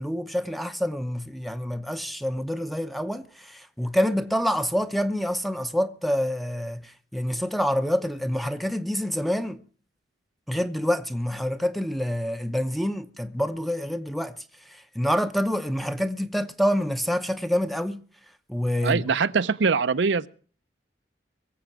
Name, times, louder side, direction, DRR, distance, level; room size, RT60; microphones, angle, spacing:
voice 1, 0.0-9.6 10.5-14.4 14.7-18.0 18.5-19.0, equal, ahead, 0.8 m, -27 dB
voice 2, 18.8-20.3, right 5 dB, 75° right, 0.6 m, -23 dB
23.0 x 7.8 x 6.0 m
head